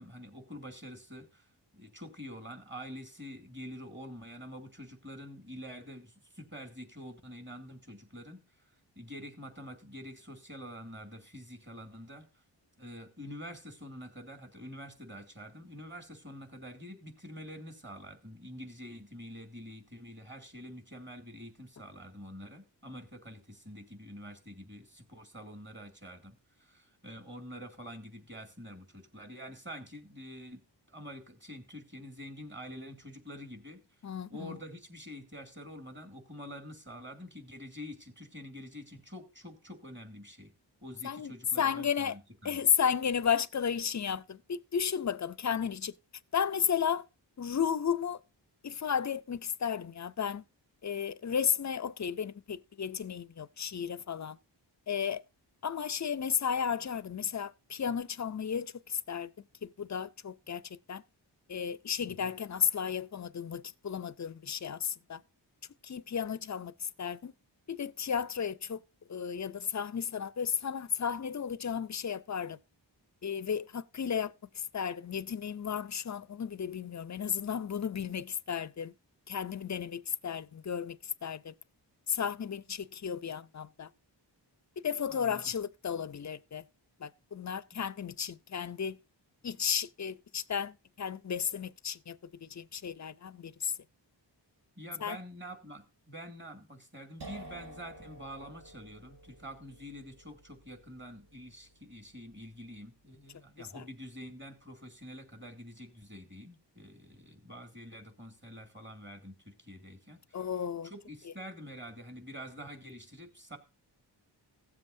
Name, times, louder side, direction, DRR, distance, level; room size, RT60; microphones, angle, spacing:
voice 1, 0.0-1.5 1.7-8.4 9.0-12.4 12.8-30.6 30.9-33.8 34.3-40.5 40.8-42.6 62.0-62.3 85.1-85.4 87.7-87.8 94.8-110.5 110.8-113.6, equal, 25° right, 2.3 m, -47 dB
voice 2, 34.0-34.6 41.0-42.2 42.4-45.9 46.3-47.1 47.4-48.2 48.6-50.4 50.8-54.4 54.9-55.2 55.6-59.3 59.6-61.0 61.5-65.2 65.8-67.3 67.7-68.8 69.1-72.6 73.2-78.9 79.3-81.5 82.1-83.9 84.8-86.6 87.0-89.0 89.4-93.8 95.0-95.2 103.6-103.8 110.3-110.9 111.2-111.3, left 7 dB, 40° left, 0.4 m, -33 dB
sound 1, 97.2-104.8, right 2 dB, 60° right, 1.4 m, -53 dB
16.5 x 7.5 x 2.6 m
wide cardioid pair, 75°, 45 cm